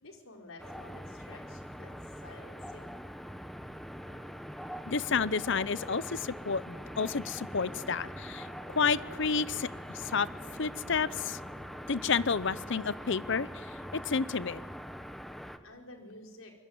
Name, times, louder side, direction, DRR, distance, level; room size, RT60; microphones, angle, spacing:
voice 1, 0.0-1.9 2.2-2.8 15.6-16.5, left 2 dB, 90° left, 3 dB, 4.8 m, -51 dB
sound 1, 0.6-15.6, equal, ahead, 1.1 m, -43 dB
sound 2, 4.1-14.0, right 2 dB, 70° right, 2.3 m, -57 dB
voice 2, 4.9-8.5 8.7-9.7 10.0-10.3 10.6-11.4 11.9-13.7 13.9-14.6, left 5 dB, 60° left, 18 dB, 0.8 m, -30 dB
26.0 x 22.0 x 9.5 m, 1.3 s
head